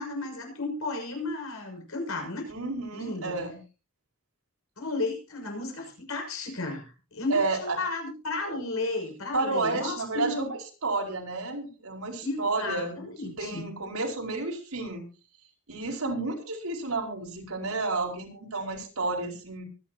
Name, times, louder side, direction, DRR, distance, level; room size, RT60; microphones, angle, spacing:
voice 1, 0.0-2.5 2.9-3.3 4.8-10.5 12.2-13.7 16.0-16.1, left 2 dB, 75° left, 3 dB, 6.6 m, -33 dB
voice 2, 2.5-3.6 7.3-7.8 8.4-8.6 9.3-13.1 13.4-15.0 15.7-19.6, right 3 dB, 85° right, 1 dB, 5.0 m, -31 dB
24.0 x 10.5 x 2.9 m, 0.33 s
head